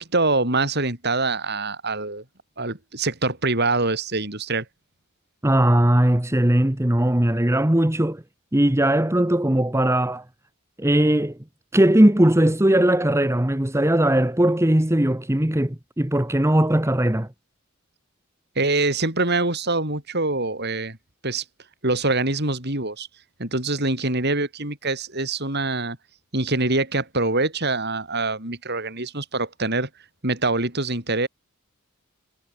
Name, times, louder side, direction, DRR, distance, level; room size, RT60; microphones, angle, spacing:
voice 1, 0.0-2.2 2.6-4.7 18.6-21.0 21.2-21.4 21.8-23.1 23.4-26.0 26.3-29.9 30.2-31.3, right 2 dB, 50° right, 5.8 m, -24 dB
voice 2, 5.4-8.2 8.5-10.2 10.8-11.4 11.7-17.3, right 1 dB, 10° right, 1.1 m, -19 dB
head